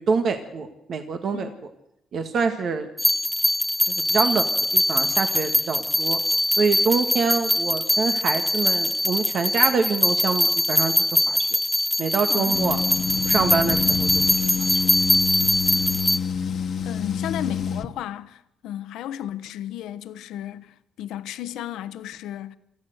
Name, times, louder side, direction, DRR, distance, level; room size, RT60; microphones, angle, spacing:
voice 1, 0.0-1.5 2.1-2.9 3.9-4.4 4.7-6.2 6.6-10.9 11.3-11.4 12.0-12.8 13.3-14.2 14.6-14.8, right 5 dB, 60° right, 1.7 m, -25 dB
sound 1, 3.0-16.2, left 1 dB, ahead, 1.1 m, -22 dB
sound 2, 12.5-17.9, left 6 dB, 60° left, 1.3 m, -27 dB
voice 2, 16.8-22.6, left 11 dB, 85° left, 1.0 m, -34 dB
26.0 x 14.5 x 8.0 m
cardioid pair, 90°, 0 cm